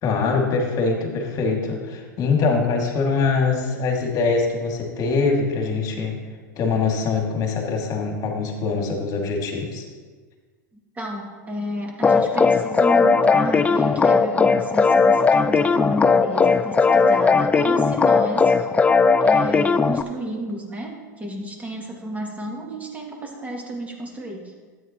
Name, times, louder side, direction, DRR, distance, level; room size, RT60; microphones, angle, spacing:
voice 1, 0.0-6.2 6.6-9.8, left 4 dB, 35° left, 1 dB, 2.3 m, -23 dB
voice 2, 11.0-18.7 19.2-24.4, equal, 15° right, 0 dB, 2.3 m, -31 dB
sound 1, 12.0-20.0, left 4 dB, 15° left, 0.4 m, -18 dB
12.5 x 9.0 x 3.0 m, 1.4 s
hypercardioid pair, 100°, 10 cm